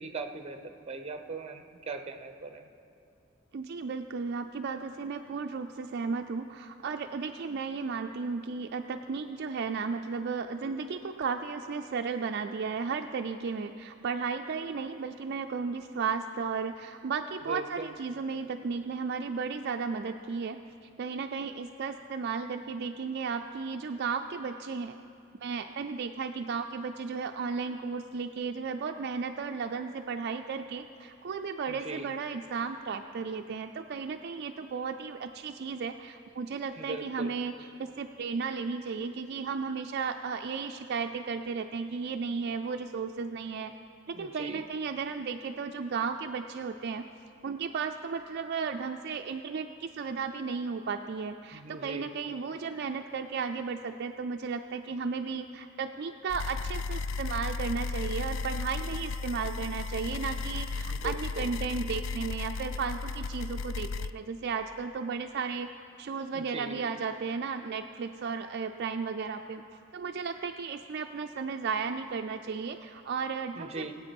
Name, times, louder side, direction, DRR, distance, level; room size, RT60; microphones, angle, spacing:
voice 1, 0.0-2.7 17.5-17.9 31.7-32.1 36.8-37.3 44.1-44.6 51.5-52.1 60.9-61.5 66.3-66.7 73.6-73.9, right 3 dB, 30° right, 7 dB, 0.8 m, -39 dB
voice 2, 3.5-20.6 21.0-25.0 25.4-37.5 37.8-43.7 44.1-47.0 47.4-65.7 66.0-69.6 69.9-73.9, right 5 dB, 55° right, 5 dB, 0.4 m, -34 dB
sound 1, 56.3-64.1, left 4 dB, 65° left, 0.3 m, -34 dB
20.0 x 8.4 x 5.3 m, 2.5 s
head